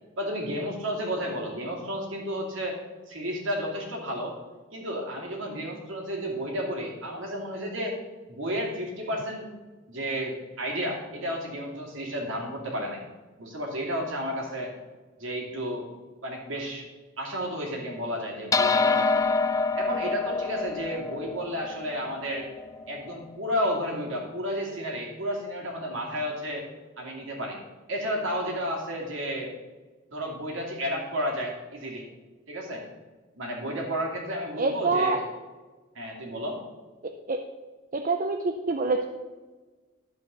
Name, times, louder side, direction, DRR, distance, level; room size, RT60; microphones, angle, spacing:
voice 1, 0.2-2.8 3.1-4.3 4.7-8.0 8.3-9.5 9.9-13.0 13.4-14.7 15.2-15.9 16.2-16.9 17.2-19.2 19.5-22.5 22.9-26.7 27.0-27.6 27.9-29.5 30.1-32.0 32.5-32.8 33.3-35.2 35.9-36.6, equal, 65° right, -1 dB, 2.5 m, -32 dB
sound 1, 18.5-23.2, left 4 dB, 15° left, 0.3 m, -27 dB
voice 2, 34.6-35.2 37.3-37.4 37.9-39.1, right 3 dB, 40° right, 5 dB, 0.5 m, -25 dB
12.0 x 5.1 x 6.7 m, 1.3 s
head